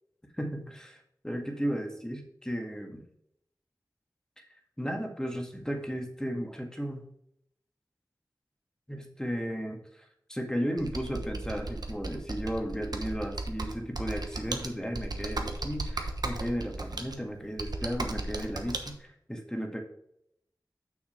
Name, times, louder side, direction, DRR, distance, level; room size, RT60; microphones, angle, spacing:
voice 1, 0.4-1.0 1.2-3.0 4.8-7.1 8.9-10.0 10.3-19.8, equal, 10° left, 2 dB, 1.8 m, -34 dB
Computer keyboard, 10.8-18.9, right 2 dB, 65° right, 1.0 m, -36 dB
6.6 x 6.2 x 4.5 m, 0.74 s
wide cardioid pair, 40°, 7 cm